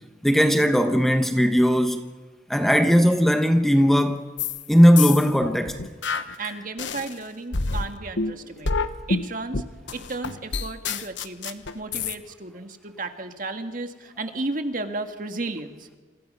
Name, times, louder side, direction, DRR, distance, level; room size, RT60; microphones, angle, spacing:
voice 1, 0.2-2.1 2.5-4.2 4.7-5.8, equal, ahead, 1.1 m, -18 dB
sound 1, 4.4-4.6 5.0-7.1 7.5-12.1, left 4 dB, 80° left, 1.2 m, -28 dB
voice 2, 6.4-9.6 9.9-15.9, right 2 dB, 45° right, 1.7 m, -34 dB
28.0 x 27.0 x 5.5 m
head